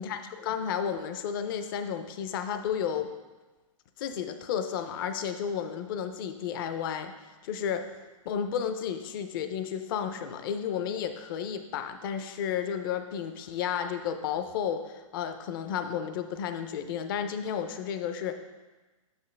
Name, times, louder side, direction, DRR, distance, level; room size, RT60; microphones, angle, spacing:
voice 1, 0.0-3.1 4.0-7.1 7.4-7.9 8.3-18.3, left 8 dB, 40° left, 9 dB, 0.4 m, -32 dB
8.1 x 5.1 x 3.2 m, 1.2 s
hypercardioid pair, 155°, 18 cm